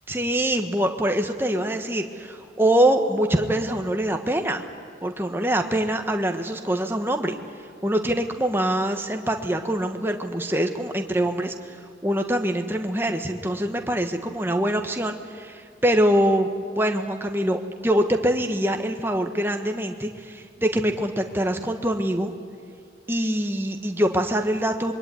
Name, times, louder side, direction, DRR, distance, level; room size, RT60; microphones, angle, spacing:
voice 1, 0.1-4.6 5.0-7.3 7.8-11.8 12.0-16.5 16.8-22.3 23.1-24.9, right 1 dB, 10° right, 5 dB, 1.4 m, -24 dB
26.0 x 22.5 x 9.4 m, 2.2 s
head